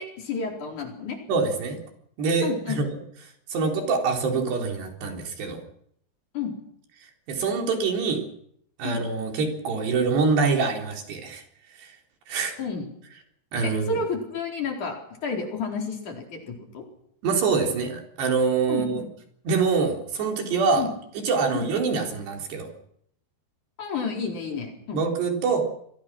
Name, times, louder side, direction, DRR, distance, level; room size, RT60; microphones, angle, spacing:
voice 1, 0.0-1.2 2.4-2.8 6.3-6.5 8.8-9.0 12.6-12.9 13.6-15.0 15.2-16.8 18.7-19.1 20.8-20.9 21.5-21.7 23.8-25.0, left 5 dB, 50° left, 1 dB, 5.6 m, -31 dB
voice 2, 1.3-1.8 2.2-2.9 3.5-5.6 7.3-8.2 8.8-11.4 11.8-11.9 12.3-12.6 13.5-14.0 17.2-19.0 19.5-20.8 21.2-22.7 24.9-25.7, right 4 dB, 85° right, 2 dB, 5.9 m, -25 dB
29.0 x 22.0 x 6.2 m, 0.71 s
omnidirectional pair, 4.7 m